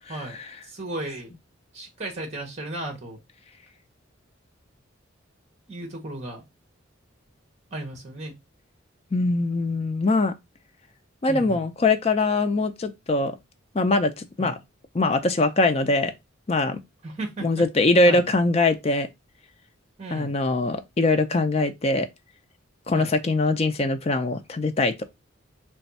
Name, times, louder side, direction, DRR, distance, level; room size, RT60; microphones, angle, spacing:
voice 1, 0.6-1.3 1.7-3.2 5.7-6.4 7.7-8.3 11.3-11.7 14.4-14.6 17.0-17.6 18.0-18.2 20.0-20.4 22.9-23.1, right 2 dB, 35° right, 1.0 m, -35 dB
voice 2, 9.1-10.3 11.2-13.4 13.7-14.6 14.9-16.1 16.5-16.8 17.4-19.1 20.1-22.1 22.9-25.0, left 2 dB, 30° left, 0.4 m, -22 dB
3.3 x 2.3 x 4.0 m
head